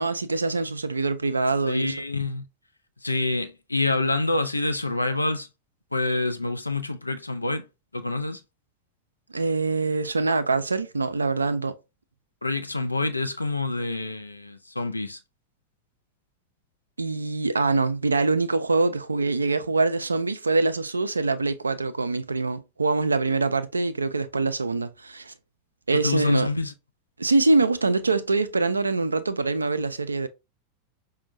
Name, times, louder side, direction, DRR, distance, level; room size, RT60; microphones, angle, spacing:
voice 1, 0.0-1.9 9.3-11.8 17.0-25.3 25.9-26.5 27.2-30.3, right 3 dB, 80° right, 0.3 m, -24 dB
voice 2, 1.7-2.4 3.0-5.5 5.9-7.7 7.9-8.4 12.4-15.2 26.0-26.7, left 2 dB, 85° left, 0.4 m, -27 dB
5.1 x 2.1 x 2.6 m
figure-of-eight pair, 90°, 0 cm